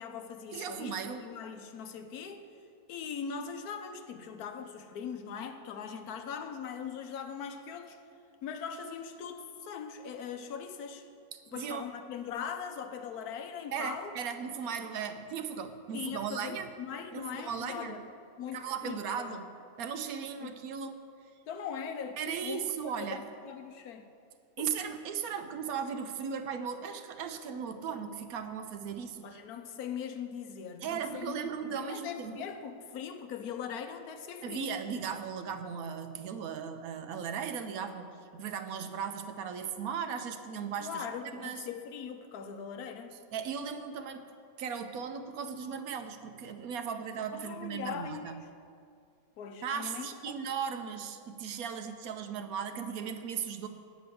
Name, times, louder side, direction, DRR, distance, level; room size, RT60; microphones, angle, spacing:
voice 1, 0.0-2.5 2.9-8.0 8.4-11.1 11.5-14.1 15.9-18.0 18.4-19.4 20.4-20.6 21.5-24.1 24.6-24.7 29.2-34.7 40.8-43.2 47.3-48.5 49.4-50.1, left 7 dB, 75° left, 7 dB, 1.2 m, -41 dB
voice 2, 0.5-1.2 11.3-11.9 13.7-16.7 17.1-18.0 18.5-19.5 19.8-20.9 22.2-23.2 24.6-29.4 30.8-32.5 34.4-41.7 43.3-48.4 49.6-53.7, right 7 dB, 70° right, 8 dB, 1.0 m, -37 dB
9.2 x 5.1 x 7.6 m, 2.4 s
omnidirectional pair, 1.6 m